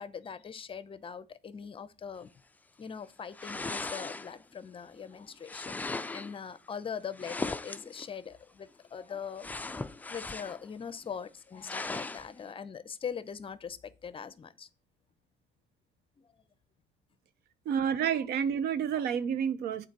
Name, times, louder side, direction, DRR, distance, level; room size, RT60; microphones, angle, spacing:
voice 1, 0.0-2.3 2.8-9.5 10.1-14.7 16.2-16.3 18.9-19.0, left 7 dB, 30° left, 0.7 m, -42 dB
sound 1, 3.3-4.5 5.4-6.4 7.1-8.1 9.4-10.7 11.0-11.1 11.6-12.3, left 3 dB, 10° left, 0.4 m, -38 dB
voice 2, 17.6-19.9, right 8 dB, 75° right, 0.8 m, -29 dB
8.1 x 4.2 x 6.0 m
cardioid pair, 110°, 17 cm